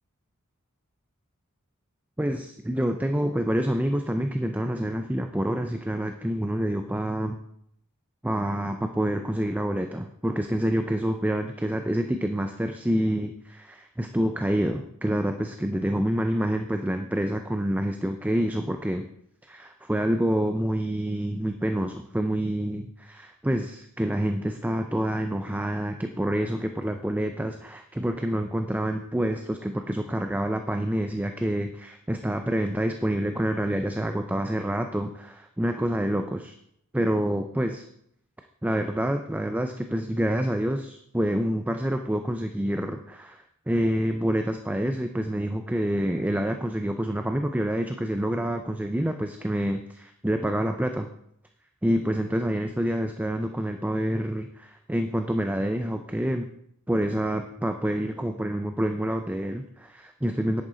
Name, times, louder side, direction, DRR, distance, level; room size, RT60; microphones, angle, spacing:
voice 1, 2.2-7.4 8.2-19.1 19.5-36.5 36.9-37.8 38.6-51.1 51.8-56.5 56.9-60.6, right 1 dB, 5° right, 6 dB, 0.5 m, -27 dB
10.5 x 8.7 x 3.9 m, 0.72 s
head